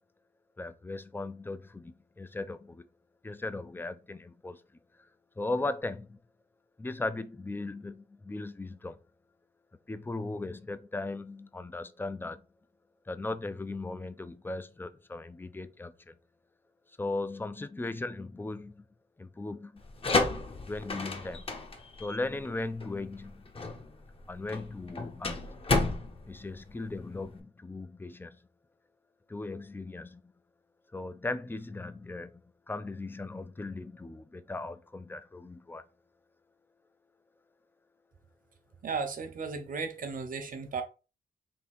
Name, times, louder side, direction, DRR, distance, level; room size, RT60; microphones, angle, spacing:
voice 1, 0.6-2.9 3.2-4.6 5.0-5.1 5.4-6.2 6.8-9.0 9.9-12.4 13.1-16.2 17.0-18.8 19.2-19.8 20.7-21.5 22.0-23.4 24.3-25.5 26.2-28.4 29.3-30.2 30.9-32.4 32.7-35.8, left 2 dB, 10° left, 0.4 m, -37 dB
sound 1, 19.8-27.4, left 3 dB, 35° left, 0.8 m, -32 dB
voice 2, 38.8-40.8, right 5 dB, 55° right, 1.0 m, -35 dB
3.6 x 2.8 x 4.2 m
cardioid pair, 95°, 17 cm